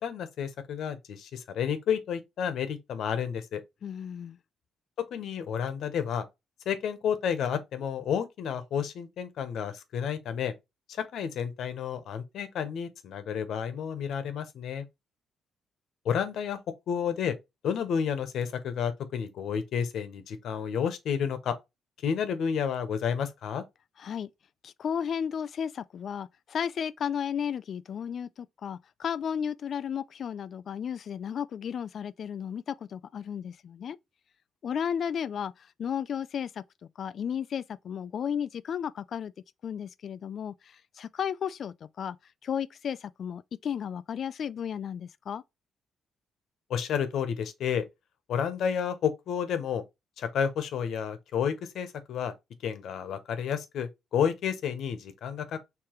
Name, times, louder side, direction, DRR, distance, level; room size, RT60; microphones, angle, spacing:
voice 1, 0.0-3.6 5.1-6.2 6.7-10.5 11.0-14.8 16.0-16.6 16.9-17.4 17.6-21.6 22.0-23.6 46.7-47.8 48.3-49.8 50.2-52.3 52.6-55.6, left 7 dB, 75° left, 0.9 m, -31 dB
voice 2, 3.8-4.4 24.0-24.3 24.6-34.0 34.6-36.6 37.0-39.3 39.6-42.2 42.4-45.4, left 8 dB, 55° left, 0.3 m, -34 dB
4.9 x 3.3 x 3.0 m
cardioid pair, 90°, 0 cm